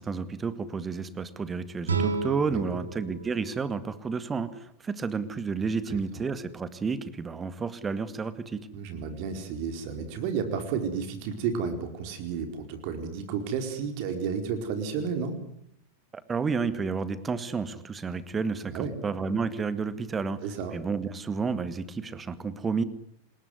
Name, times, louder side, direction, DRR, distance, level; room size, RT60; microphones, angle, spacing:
voice 1, 0.0-8.7 16.1-20.4 20.7-22.8, right 5 dB, 15° right, 14 dB, 2.0 m, -31 dB
sound 1, 1.8-4.9, right 4 dB, 75° right, 3.4 m, -33 dB
voice 2, 2.5-2.8 5.9-6.2 8.7-15.4 18.7-18.9 20.4-20.8, right 6 dB, 45° right, 7 dB, 4.5 m, -32 dB
27.5 x 21.0 x 9.7 m, 0.71 s
figure-of-eight pair, 90°, 0 cm